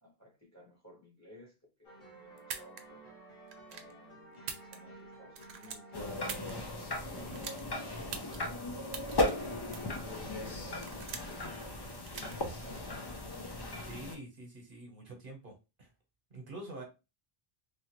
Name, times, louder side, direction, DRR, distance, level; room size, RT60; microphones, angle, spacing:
voice 1, 0.0-1.5 1.8-3.2 3.7-6.7 7.1-8.7 9.8-11.8 12.1-12.9 16.8-16.9, left 1 dB, 15° left, -3 dB, 0.9 m, -56 dB
sound 1, 1.8-12.0, right 2 dB, 55° left, 1.5 m, -53 dB
sound 2, 2.4-2.8 3.5-3.9 4.3-5.1 5.3-6.5 7.3-7.6 8.1-8.4 8.9-9.1 9.7-10.0 10.5-11.4 12.1-12.3, right 6 dB, 90° right, 0.9 m, -42 dB
sound 3, 5.9-14.2, left 2 dB, 35° left, 0.4 m, -37 dB
voice 2, 13.8-15.5 15.8-15.9 16.3-16.8, right 2 dB, 55° right, 2 dB, 1.1 m, -46 dB
3.3 x 2.4 x 2.9 m, 0.27 s
omnidirectional pair, 1.1 m